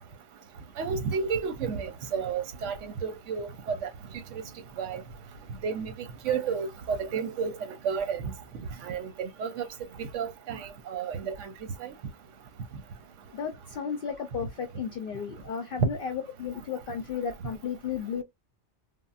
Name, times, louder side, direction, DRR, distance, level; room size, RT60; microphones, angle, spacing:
voice 1, 0.8-3.9 4.3-4.4 4.8-5.0 5.6-5.9 6.2-8.3 8.8-9.7 10.0-11.5 11.8-11.9, right 6 dB, 80° right, 1.0 m, -32 dB
voice 2, 13.3-18.2, left 7 dB, 60° left, 0.6 m, -34 dB
3.6 x 2.0 x 2.3 m
omnidirectional pair, 1.2 m